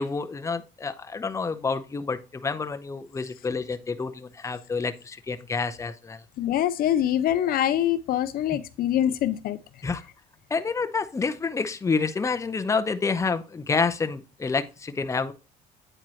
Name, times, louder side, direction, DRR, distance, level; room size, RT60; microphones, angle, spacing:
voice 1, 0.0-6.2 8.5-8.6 9.8-10.0 10.5-15.3, left 4 dB, 15° left, 0.6 m, -28 dB
voice 2, 6.4-9.6, left 11 dB, 60° left, 0.5 m, -24 dB
8.8 x 4.5 x 3.1 m
cardioid pair, 110°, 17 cm